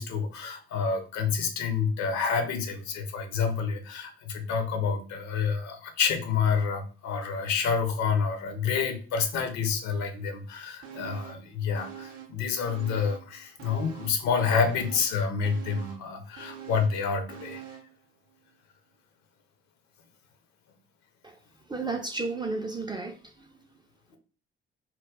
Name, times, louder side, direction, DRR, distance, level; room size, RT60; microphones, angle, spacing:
voice 1, 0.0-17.6, left 6 dB, 60° left, 0.6 m, -28 dB
sound 1, 10.8-11.5 11.7-13.3 13.6-18.0 18.3-18.4, right 9 dB, 55° right, 0.6 m, -45 dB
voice 2, 21.7-23.5, right 3 dB, 15° right, 0.3 m, -33 dB
2.2 x 2.1 x 3.5 m
figure-of-eight pair, 40°, 31 cm